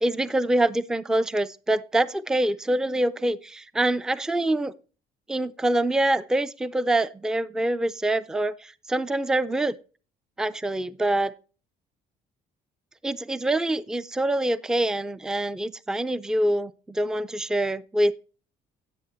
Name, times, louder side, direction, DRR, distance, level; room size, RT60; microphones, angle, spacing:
voice 1, 0.0-4.7 5.3-9.7 10.4-11.3 13.0-18.1, right 1 dB, 5° right, 0.4 m, -25 dB
10.0 x 7.8 x 4.3 m
cardioid pair, 110°, 17 cm